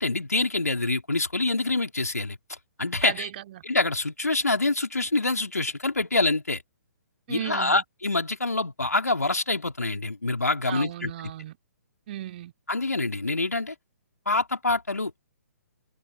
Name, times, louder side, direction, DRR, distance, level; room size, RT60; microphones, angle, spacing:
voice 1, 0.0-2.4 2.8-3.3 3.6-6.6 7.3-11.1 12.7-13.7 14.3-15.1, left 2 dB, 80° left, 4.1 m, -26 dB
voice 2, 3.0-3.6 7.3-7.8 10.7-11.6 12.1-12.5, right 13 dB, 40° right, 3.3 m, -36 dB
figure-of-eight pair, 125°, 9 cm